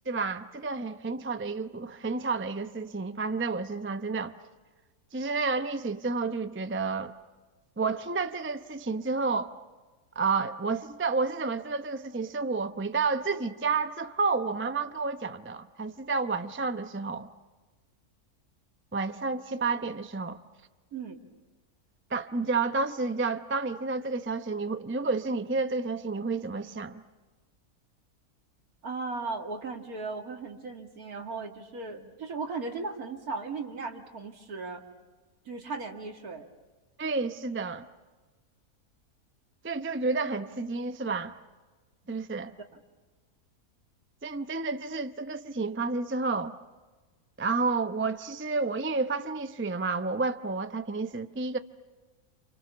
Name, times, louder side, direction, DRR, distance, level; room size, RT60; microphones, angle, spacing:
voice 1, 0.1-4.3 5.1-7.1 7.8-9.5 10.2-17.3 18.9-20.4 22.1-27.0 37.0-37.9 39.6-41.3 42.1-42.5 44.2-46.5 47.4-51.6, right 4 dB, 15° right, 0.5 m, -30 dB
voice 2, 28.8-34.8 35.5-36.5, right 4 dB, 75° right, 2.6 m, -37 dB
28.5 x 28.5 x 7.0 m
omnidirectional pair, 1.6 m